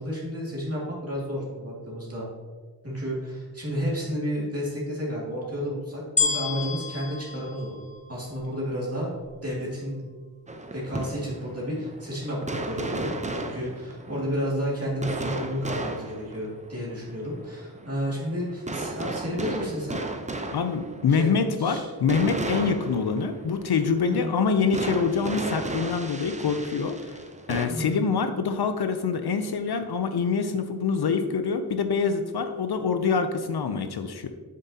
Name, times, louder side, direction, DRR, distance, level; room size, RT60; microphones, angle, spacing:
voice 1, 0.0-2.3 2.8-7.8 8.1-9.1 9.4-10.0 10.7-20.0 21.1-21.3 21.6-21.9 24.1-24.4 27.7-28.1 29.7-29.8, equal, 35° right, -6 dB, 2.2 m, -31 dB
sound 1, 6.2-8.6 9.2-9.3, left 4 dB, 20° left, 1.0 m, -29 dB
sound 2, 10.5-27.7, right 2 dB, 20° right, 0.6 m, -35 dB
voice 2, 20.5-27.2 27.5-34.3, left 5 dB, 75° left, 8 dB, 0.6 m, -25 dB
7.6 x 7.2 x 2.8 m, 1.4 s
wide cardioid pair, 65°, 39 cm